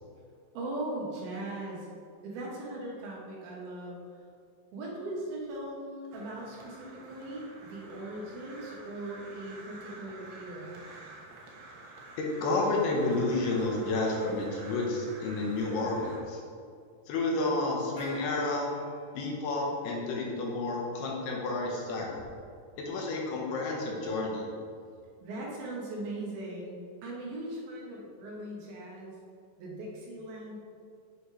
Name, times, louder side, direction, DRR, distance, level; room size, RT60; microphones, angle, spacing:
voice 1, 0.5-2.0 2.2-4.0 4.7-10.8 25.2-29.2 29.6-30.6, right 1 dB, 70° right, -3 dB, 2.9 m, -39 dB
Crow, 6.1-16.2, right 2 dB, 85° right, 3.3 m, -49 dB
voice 2, 12.2-16.4 17.1-18.7 19.1-22.2 22.8-24.4, left 2 dB, 75° left, -1 dB, 3.0 m, -30 dB
Gong, 18.0-20.0, left 1 dB, 60° left, 0.8 m, -49 dB
8.1 x 8.0 x 3.3 m, 2.3 s
omnidirectional pair, 4.8 m